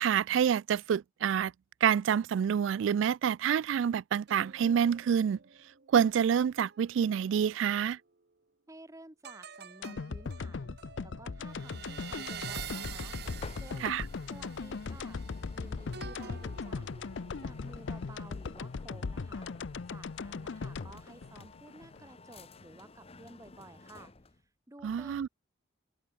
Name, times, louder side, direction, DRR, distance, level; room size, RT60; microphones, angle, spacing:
voice 1, 0.0-1.5 1.8-5.4 5.9-8.0 13.8-14.0 24.8-25.3, right 8 dB, 75° right, 0.3 m, -27 dB
sound 1, 4.3-7.9 9.2-17.8 18.2-18.5, right 8 dB, 55° right, 1.0 m, -48 dB
voice 2, 8.7-13.2 13.5-13.9 14.3-15.2 15.5-16.9 17.4-19.5 19.9-24.1 24.7-25.3, right 1 dB, 15° right, 1.3 m, -53 dB
sound 2, 9.8-22.1 22.4-22.5, left 4 dB, 70° left, 0.5 m, -39 dB
sound 3, 13.2-24.4, left 3 dB, 30° left, 1.0 m, -54 dB
head